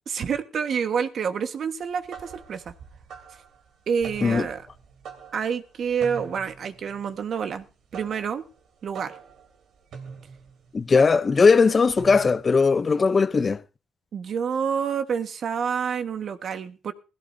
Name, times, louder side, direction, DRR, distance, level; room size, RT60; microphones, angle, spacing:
voice 1, 0.1-2.7 3.9-4.7 5.3-7.7 7.9-8.4 8.8-9.2 14.1-16.9, right 7 dB, 60° right, 1.3 m, -28 dB
sound 1, 1.8-12.6, right 6 dB, 75° right, 3.1 m, -44 dB
voice 2, 10.7-13.6, left 4 dB, 35° left, 0.6 m, -19 dB
17.5 x 16.0 x 2.7 m
cardioid pair, 90°, 0 cm